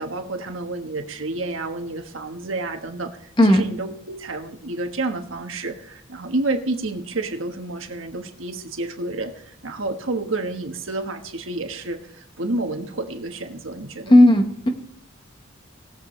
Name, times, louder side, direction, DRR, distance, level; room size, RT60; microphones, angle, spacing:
voice 1, 0.0-14.2, right 2 dB, 75° right, 5 dB, 1.4 m, -30 dB
voice 2, 14.1-14.7, left 1 dB, 25° left, 5 dB, 1.2 m, -13 dB
20.0 x 7.4 x 3.2 m, 0.67 s
head